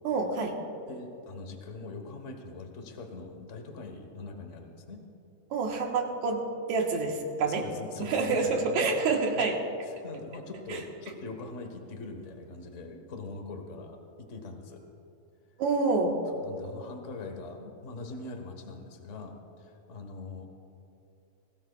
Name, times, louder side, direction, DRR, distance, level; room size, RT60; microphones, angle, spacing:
voice 1, 0.0-0.6 5.5-7.6 8.0-9.6 10.7-10.8 15.6-16.2, right 4 dB, 80° right, 1 dB, 2.6 m, -27 dB
voice 2, 0.9-5.0 7.4-8.9 9.3-9.5 9.8-14.8 16.4-20.5, left 3 dB, 55° left, 5 dB, 0.8 m, -42 dB
22.0 x 17.0 x 2.3 m, 2.7 s
omnidirectional pair, 3.3 m